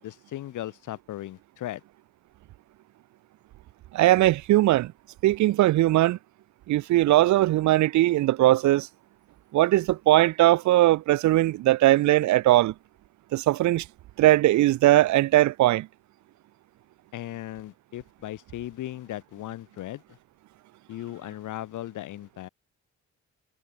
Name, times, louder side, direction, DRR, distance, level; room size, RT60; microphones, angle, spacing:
voice 1, 0.0-1.8 17.1-20.2 20.9-22.5, left 14 dB, 80° left, 3.9 m, -37 dB
voice 2, 3.9-4.9 5.2-6.2 6.7-8.9 9.5-12.7 13.3-13.8 14.2-15.9, right 15 dB, 70° right, 0.6 m, -20 dB
cardioid pair, 90°, 30 cm